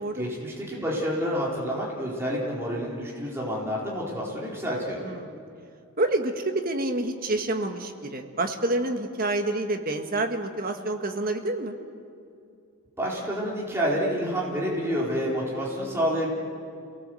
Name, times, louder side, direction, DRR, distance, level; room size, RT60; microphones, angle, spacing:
voice 1, 0.1-5.0 13.0-16.3, equal, 10° right, -5 dB, 3.8 m, -28 dB
voice 2, 5.0-5.4 6.0-11.8, right 2 dB, 40° right, 5 dB, 1.7 m, -28 dB
28.5 x 18.5 x 7.8 m, 2.4 s
head